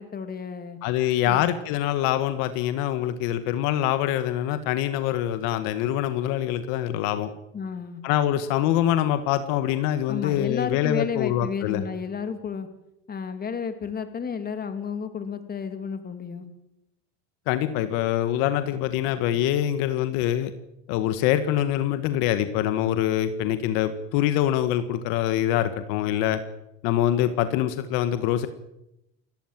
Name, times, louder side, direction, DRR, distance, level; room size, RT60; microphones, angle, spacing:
voice 1, 0.0-0.8 7.5-8.0 10.1-12.7 13.1-16.5, left 6 dB, 25° left, 9 dB, 2.7 m, -32 dB
voice 2, 0.8-7.3 8.0-11.8 17.5-20.5 20.9-26.4 26.8-28.5, left 12 dB, 70° left, 10 dB, 1.8 m, -24 dB
28.5 x 14.0 x 7.6 m, 0.85 s
supercardioid pair, 110°, 34 cm